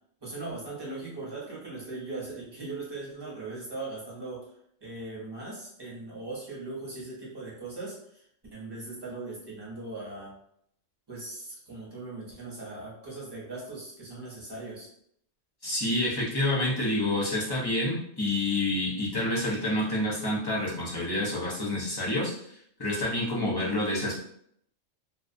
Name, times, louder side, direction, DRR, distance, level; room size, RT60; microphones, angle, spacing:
voice 1, 0.2-4.5 4.8-10.3 11.1-14.9, right 2 dB, 25° right, -5 dB, 0.7 m, -39 dB
voice 2, 15.6-24.2, left 1 dB, 30° left, -5 dB, 0.4 m, -28 dB
2.3 x 2.1 x 2.5 m, 0.69 s
omnidirectional pair, 1.3 m